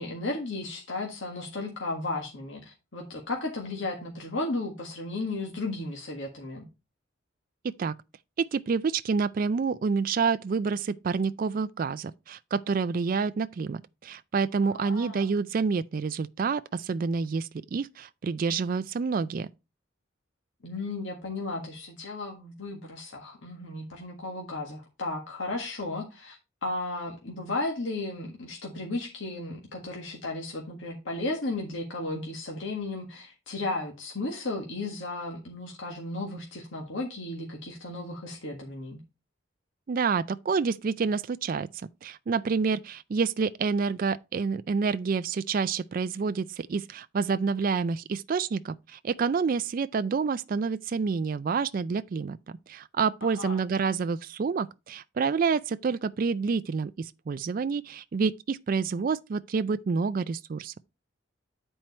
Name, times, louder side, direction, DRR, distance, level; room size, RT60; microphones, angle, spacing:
voice 1, 0.0-6.7 14.6-15.3 20.6-39.0 53.2-53.6, left 2 dB, 70° left, 1.6 m, -34 dB
voice 2, 8.4-19.5 39.9-41.7 42.0-52.4 52.7-60.7, right 5 dB, 45° right, 0.3 m, -28 dB
9.0 x 4.5 x 4.2 m
head